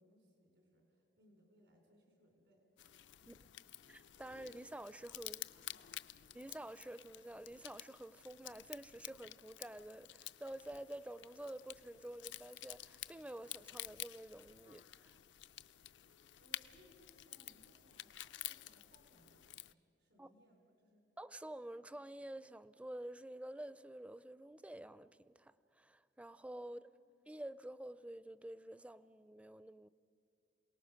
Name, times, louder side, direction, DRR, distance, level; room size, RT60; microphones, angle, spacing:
voice 1, 0.0-2.7 3.2-3.5 5.7-6.0 16.3-19.6 20.0-21.1 26.6-27.0, equal, 85° right, 4.5 m, -69 dB
sound 1, 2.8-19.7, left 14 dB, 75° left, 0.5 m, -51 dB
voice 2, 3.9-5.4 6.3-15.2 20.2-20.3 21.2-26.9 27.3-29.9, right 1 dB, 5° right, 0.4 m, -49 dB
27.5 x 18.5 x 6.3 m
head